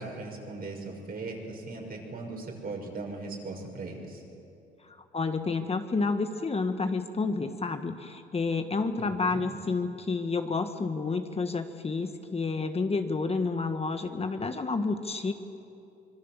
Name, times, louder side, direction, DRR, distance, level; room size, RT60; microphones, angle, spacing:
voice 1, 0.0-4.2 9.0-9.4, right 3 dB, 50° right, 1 dB, 5.7 m, -39 dB
voice 2, 4.9-15.3, left 4 dB, 30° left, 7 dB, 1.4 m, -30 dB
25.0 x 22.0 x 7.4 m, 2.7 s
cardioid pair, 90°, 20 cm